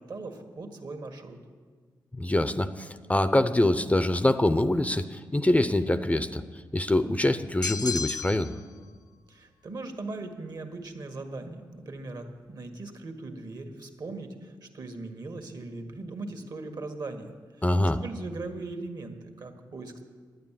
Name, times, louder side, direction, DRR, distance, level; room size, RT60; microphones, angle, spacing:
voice 1, 0.0-1.4 9.3-20.0, right 3 dB, 55° right, 6 dB, 1.6 m, -39 dB
voice 2, 2.2-6.4 6.7-8.5 17.6-18.0, left 1 dB, 15° left, 11 dB, 0.6 m, -24 dB
sound 1, 7.6-8.6, left 5 dB, 55° left, 0.7 m, -32 dB
10.5 x 9.2 x 7.5 m, 1.5 s
cardioid pair, 55°, 8 cm